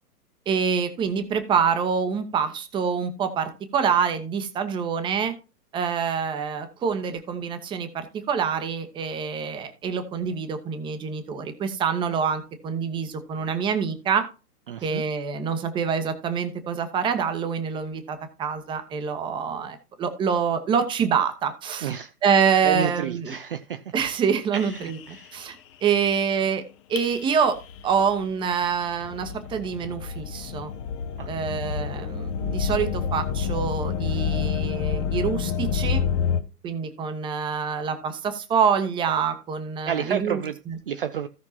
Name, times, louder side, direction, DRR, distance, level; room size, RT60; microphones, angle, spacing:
voice 1, 0.5-5.3 5.7-14.2 14.8-21.9 22.2-23.3 23.9-25.0 25.3-25.6 25.8-26.6 26.9-27.6 27.8-30.7 31.3-36.0 36.6-40.8, right 6 dB, 10° right, 1.0 m, -26 dB
voice 2, 14.7-15.0 21.8-22.1 22.6-23.9 24.5-25.4 31.2-31.3 39.9-40.6 40.9-41.3, right 9 dB, 35° right, 0.6 m, -30 dB
sound 1, 24.6-25.2 27.0-36.4, left 7 dB, 20° left, 0.7 m, -28 dB
16.5 x 5.8 x 2.9 m
figure-of-eight pair, 125°, 47 cm